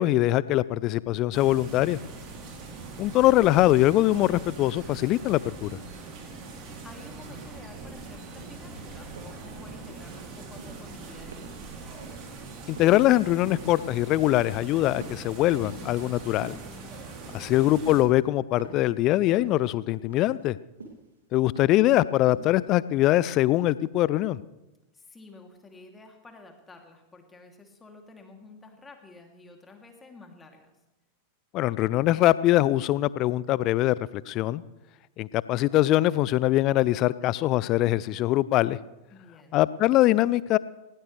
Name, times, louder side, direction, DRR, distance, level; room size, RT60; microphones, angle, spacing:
voice 1, 0.0-2.0 3.0-5.7 12.7-16.5 17.3-20.6 21.3-24.4 31.5-34.6 35.2-38.8 39.5-40.6, left 15 dB, 40° left, 19 dB, 0.5 m, -22 dB
sound 1, 1.3-18.0, right 3 dB, 40° right, 3.6 m, -42 dB
voice 2, 6.8-11.5 17.1-17.6 24.9-30.7 39.1-39.7, left 3 dB, 15° left, 3 dB, 2.8 m, -50 dB
sound 2, 8.4-8.6 9.2-9.4 9.8-10.2 10.5-10.9 11.3-11.7 12.0-12.3 12.8-13.1 13.5-13.9 14.3-14.7 15.0-16.0 16.4-16.8 17.2-17.5 17.9-18.3 18.6-18.9 19.3-19.6 20.1-20.5 20.8-21.1 21.6-21.9 22.3-22.6 23.1-23.3, right 3 dB, 70° right, 2.5 m, -45 dB
19.0 x 17.5 x 3.3 m, 1.0 s
figure-of-eight pair, 90°, 0 cm